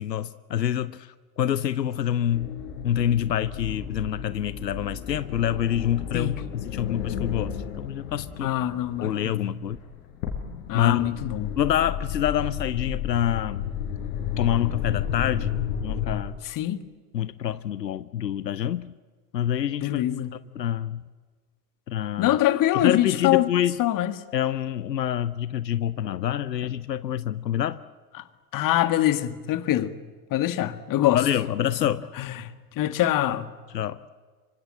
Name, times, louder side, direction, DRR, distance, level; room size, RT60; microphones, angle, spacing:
voice 1, 0.0-2.5 2.8-8.5 9.0-9.8 10.7-11.1 11.6-13.7 14.4-15.5 15.8-16.4 17.1-19.0 19.3-20.0 20.5-21.0 21.9-22.4 22.7-23.8 24.3-27.8 31.1-32.1 33.7-34.0, left 10 dB, 90° left, 0.8 m, -26 dB
sound 1, 2.3-16.3, left 8 dB, 65° left, 5.0 m, -33 dB
voice 2, 8.4-9.5 10.7-11.5 16.5-16.8 19.8-20.3 22.2-23.5 23.8-24.1 28.5-29.9 30.3-31.2 32.2-33.5, left 13 dB, 40° left, 1.8 m, -24 dB
26.0 x 24.5 x 8.7 m
hypercardioid pair, 80°, 48 cm